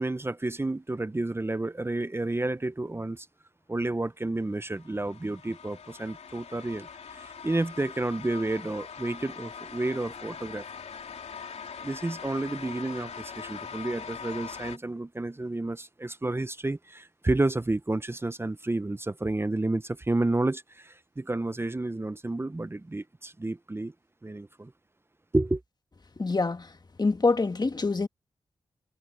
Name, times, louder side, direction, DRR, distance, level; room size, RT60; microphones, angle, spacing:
voice 1, 0.0-3.3 3.7-10.7 11.8-23.9 24.2-24.7 25.3-25.6, right 2 dB, 20° right, 0.8 m, -30 dB
sound 1, 4.7-14.8, left 6 dB, 70° left, 2.9 m, -42 dB
voice 2, 26.2-26.7 27.0-28.1, left 3 dB, 35° left, 1.7 m, -25 dB
cardioid pair, 45°, 12 cm